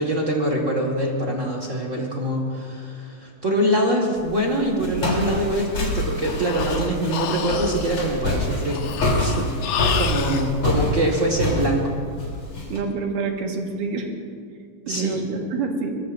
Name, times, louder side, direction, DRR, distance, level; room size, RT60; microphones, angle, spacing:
voice 1, 0.0-9.5 9.8-12.0 14.8-15.1, right 1 dB, 40° right, -1 dB, 1.1 m, -24 dB
Walk footsteps, 4.2-12.8, left 1 dB, 40° left, 4.0 m, -26 dB
Breathing, 6.2-10.5, left 8 dB, 70° left, 2.0 m, -30 dB
voice 2, 12.7-14.1 14.9-15.9, right 4 dB, 70° right, 1 dB, 3.1 m, -27 dB
23.5 x 22.0 x 2.6 m, 2.2 s
omnidirectional pair, 4.0 m